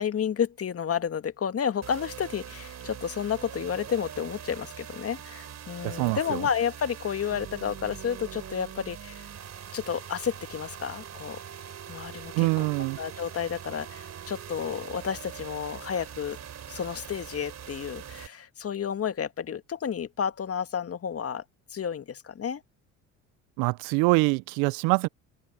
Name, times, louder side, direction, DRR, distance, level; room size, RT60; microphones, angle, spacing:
voice 1, 0.0-9.3 9.7-11.4 11.9-12.7 13.0-16.4 16.7-21.4 21.7-22.6, left 8 dB, 40° left, 1.9 m, -31 dB
sound 1, 1.8-18.3, right 8 dB, 45° right, 3.6 m, -42 dB
voice 2, 5.8-6.4 12.4-13.0 23.6-25.1, right 27 dB, 70° right, 0.7 m, -24 dB
open air
hypercardioid pair, 65°, 38 cm